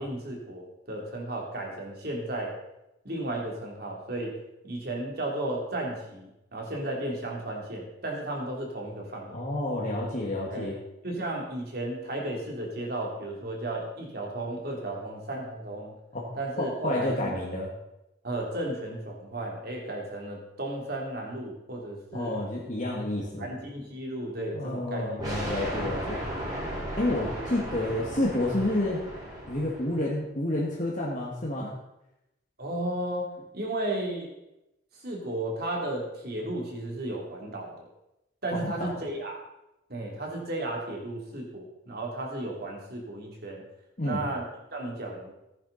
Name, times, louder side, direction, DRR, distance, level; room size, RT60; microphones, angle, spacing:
voice 1, 0.0-2.5 3.0-4.3 4.6-9.3 10.5-10.7 11.0-15.9 16.3-17.3 18.2-22.4 23.2-25.1 32.6-34.3 35.0-37.9 38.4-39.4 39.9-43.6 44.0-45.3, right 1 dB, 45° right, -1 dB, 3.1 m, -34 dB
voice 2, 9.3-10.7 16.1-16.3 16.6-17.7 22.1-23.5 24.5-26.2 27.0-29.0 29.5-31.7 38.5-38.9 44.0-44.3, left 1 dB, 40° left, -3 dB, 1.8 m, -29 dB
sound 1, 25.2-30.1, equal, 20° right, 4.7 m, -35 dB
15.0 x 9.8 x 4.1 m, 0.91 s
head